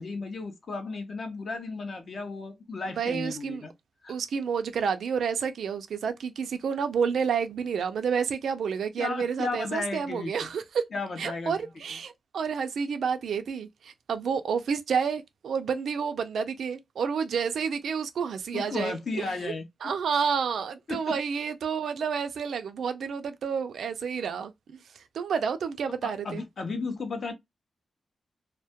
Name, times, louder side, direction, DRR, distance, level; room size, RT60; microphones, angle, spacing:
voice 1, 0.0-3.7 4.0-4.1 9.0-10.5 10.9-11.6 18.5-19.7 20.9-21.2 26.0-27.3, left 3 dB, 50° left, 0.5 m, -34 dB
voice 2, 3.0-3.6 4.1-10.8 11.2-19.5 19.8-24.5 25.1-26.4, right 6 dB, 85° right, 0.3 m, -30 dB
2.1 x 2.1 x 2.7 m
wide cardioid pair, 155°, 0 cm